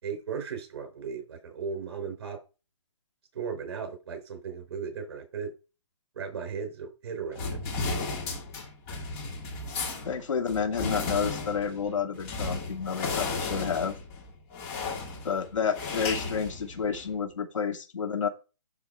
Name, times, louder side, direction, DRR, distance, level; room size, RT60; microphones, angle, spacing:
voice 1, 0.0-2.4 3.3-5.5 6.2-7.6, right 6 dB, 55° right, 4 dB, 5.4 m, -36 dB
sound 1, 7.3-17.2, left 3 dB, 20° left, 2.9 m, -34 dB
voice 2, 10.1-14.0 15.2-18.3, left 6 dB, 75° left, 5 dB, 2.4 m, -30 dB
12.0 x 4.4 x 4.4 m, 0.29 s
hypercardioid pair, 165°, 16 cm